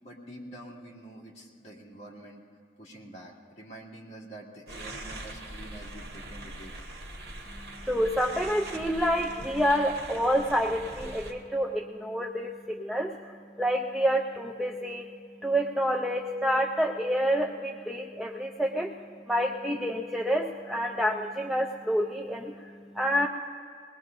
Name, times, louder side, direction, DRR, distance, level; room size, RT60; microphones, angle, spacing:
voice 1, 0.0-2.4 2.8-6.7, right 1 dB, 35° left, -4 dB, 2.4 m, -46 dB
sound 1, 4.7-11.3, right 1 dB, 65° right, 1.8 m, -42 dB
voice 2, 7.8-15.1 15.4-18.9 19.3-23.3, equal, ahead, 0 dB, 0.4 m, -28 dB
21.0 x 20.0 x 2.6 m, 2.4 s
head